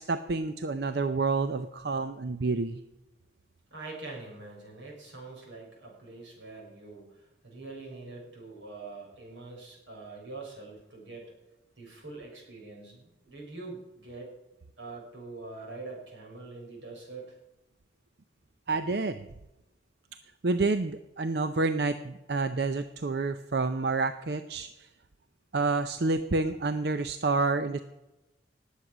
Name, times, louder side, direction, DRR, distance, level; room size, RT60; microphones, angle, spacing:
voice 1, 0.0-2.8 18.7-19.3 20.4-24.7 25.5-27.8, right 3 dB, 60° right, 10 dB, 0.6 m, -28 dB
voice 2, 3.7-11.3 11.8-14.3 14.8-17.4, right 3 dB, 85° right, -2 dB, 6.2 m, -44 dB
19.0 x 8.3 x 6.2 m, 1.0 s
head